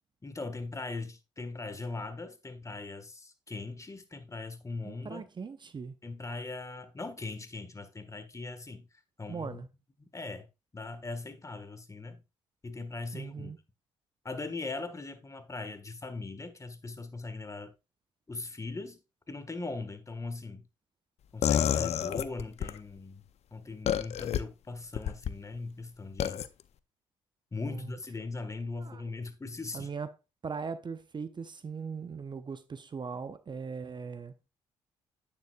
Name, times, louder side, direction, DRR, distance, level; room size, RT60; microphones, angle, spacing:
voice 1, 0.2-5.3 6.0-8.9 9.2-9.7 10.0-10.5 10.7-12.2 12.6-13.5 14.2-17.7 18.3-19.0 19.3-20.6 21.3-23.2 23.5-26.5 27.5-29.9, left 3 dB, 25° left, 1.5 m, -40 dB
voice 2, 4.8-6.0 9.3-9.7 13.1-13.6 27.7-27.9 28.8-29.0 29.7-30.1 30.4-34.3, right 5 dB, 35° right, 0.8 m, -39 dB
sound 1, 21.4-22.8 23.9-24.4 25.0-25.3 26.2-26.5, left 10 dB, 55° left, 0.6 m, -28 dB
9.4 x 6.9 x 2.4 m
hypercardioid pair, 50°, 13 cm